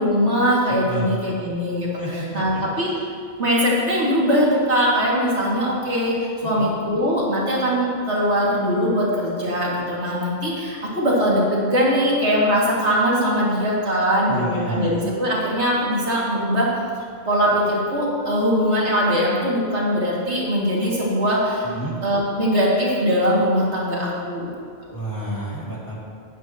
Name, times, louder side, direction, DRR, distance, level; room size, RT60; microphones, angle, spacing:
voice 1, 0.0-2.9 3.4-16.7 17.3-21.7 22.0-24.5 24.9-25.0, equal, 65° right, -5 dB, 2.6 m, -21 dB
voice 2, 2.0-2.9 6.4-6.7 14.3-14.9 21.6-21.9 24.9-25.9, right 1 dB, 15° left, -7 dB, 2.3 m, -30 dB
15.5 x 9.2 x 3.0 m, 2.2 s
omnidirectional pair, 1.2 m